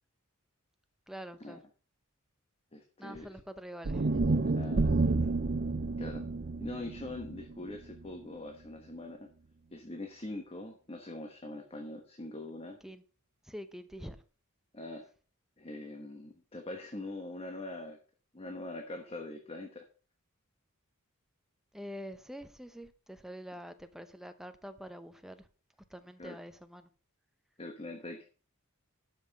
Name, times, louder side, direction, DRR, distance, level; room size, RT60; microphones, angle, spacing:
voice 1, 1.1-1.6 3.0-4.3 12.8-13.0 13.5-14.2 21.7-25.5 25.9-26.9, equal, ahead, 0.8 m, -45 dB
voice 2, 2.7-3.4 4.5-5.1 6.0-6.2 6.6-9.3 9.7-12.8 14.7-15.1 15.6-18.0 18.3-19.8 26.2-26.4 27.6-28.3, left 1 dB, 25° left, 1.2 m, -43 dB
sound 1, 3.8-8.1, right 3 dB, 45° right, 0.6 m, -30 dB
12.0 x 5.8 x 5.5 m
head